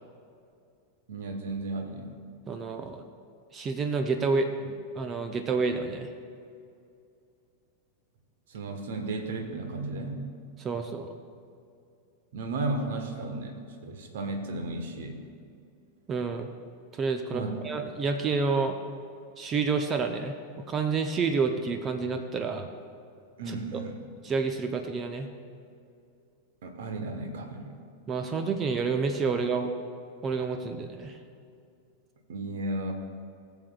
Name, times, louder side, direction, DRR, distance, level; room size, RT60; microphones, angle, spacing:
voice 1, 1.1-2.1 8.5-10.3 12.3-15.2 17.3-17.6 23.4-24.0 26.6-27.8 32.3-32.9, right 2 dB, 60° right, 4 dB, 1.3 m, -34 dB
voice 2, 2.5-3.0 3.5-6.1 10.6-11.1 16.1-16.5 16.9-18.8 19.4-20.3 20.7-22.7 23.7-23.8 24.2-25.3 28.1-29.7 30.2-31.2, right 4 dB, 25° right, 6 dB, 0.6 m, -29 dB
19.0 x 7.2 x 2.4 m, 2.4 s
figure-of-eight pair, 90°, 0 cm